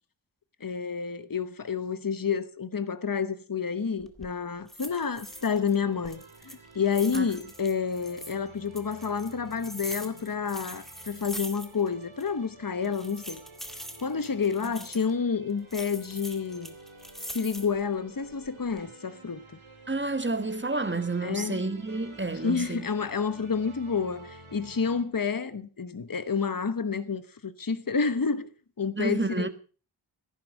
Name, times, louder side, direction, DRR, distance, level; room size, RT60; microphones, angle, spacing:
voice 1, 0.6-13.4 14.0-16.7 17.3-19.4 21.2-21.6 22.4-28.5 28.8-29.5, left 6 dB, 45° left, 1.1 m, -29 dB
sound 1, 4.0-4.3 4.7-5.7 6.0-8.3 8.7-11.9 12.2-12.3 12.8-15.1 15.7-17.8 18.3-18.8, equal, ahead, 1.9 m, -42 dB
sound 2, 5.2-25.0, right 2 dB, 80° right, 3.0 m, -51 dB
voice 2, 19.9-22.8 28.9-29.5, right 3 dB, 25° right, 1.5 m, -30 dB
14.5 x 11.0 x 6.2 m
wide cardioid pair, 70°, 48 cm